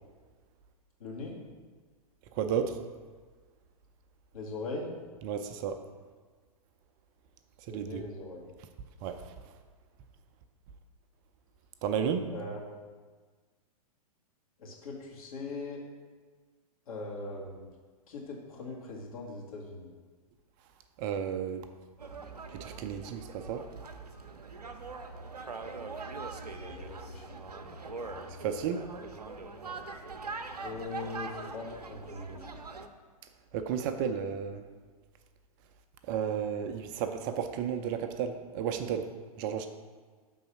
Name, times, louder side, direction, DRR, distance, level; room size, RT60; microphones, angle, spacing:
voice 1, 1.0-1.4 4.3-4.9 7.7-8.5 12.3-12.7 14.6-15.8 16.9-17.7 18.1-19.9 26.6-27.4 30.6-32.6, left 3 dB, 65° left, -3 dB, 1.8 m, -41 dB
voice 2, 2.3-2.8 5.2-5.8 7.7-8.0 9.0-9.2 11.8-12.3 21.0-21.7 22.5-23.6 28.4-28.8 33.5-34.6 36.1-39.1 39.4-39.7, right 8 dB, 35° right, 7 dB, 0.4 m, -32 dB
sound 1, 22.0-32.9, right 3 dB, 85° right, 0.5 m, -42 dB
5.4 x 3.9 x 5.9 m, 1.5 s
figure-of-eight pair, 105°, 20 cm